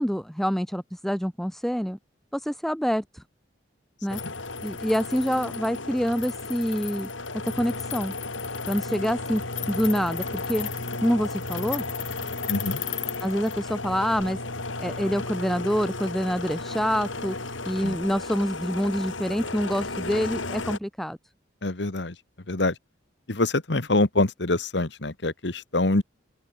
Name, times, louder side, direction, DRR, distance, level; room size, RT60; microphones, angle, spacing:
voice 1, 0.0-2.0 2.3-3.2 4.0-4.2 4.6-7.1 7.5-8.1 8.7-9.4 9.7-10.7 11.0-11.8 13.2-14.4 14.8-17.3 17.7-21.2, equal, ahead, 3.2 m, -26 dB
sound 1, 4.1-20.8, left 3 dB, 85° left, 6.9 m, -33 dB
voice 2, 12.5-12.8 17.8-18.0 21.6-22.1 22.5-22.7 23.3-26.0, left 2 dB, 65° left, 1.5 m, -25 dB
open air
head